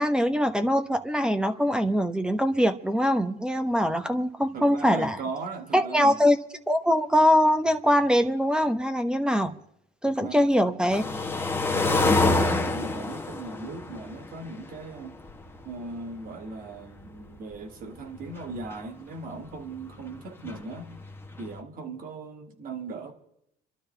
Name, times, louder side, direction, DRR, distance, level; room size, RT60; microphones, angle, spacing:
voice 1, 0.0-5.2 5.7-6.4 6.7-9.6 10.0-11.0, equal, 5° right, 1.0 m, -23 dB
voice 2, 4.5-6.2 10.0-10.5 11.0-11.4 11.7-15.2 15.6-20.9 21.4-23.1, right 3 dB, 55° right, 2.2 m, -38 dB
sound 1, 10.9-15.7 16.0-16.1 16.3-16.4 17.0-17.2 17.6-17.7 17.9-18.0 18.2-18.7 20.1-20.2 20.5-21.5, left 3 dB, 15° left, 1.3 m, -26 dB
27.5 x 12.5 x 3.4 m
cardioid pair, 110°, 17 cm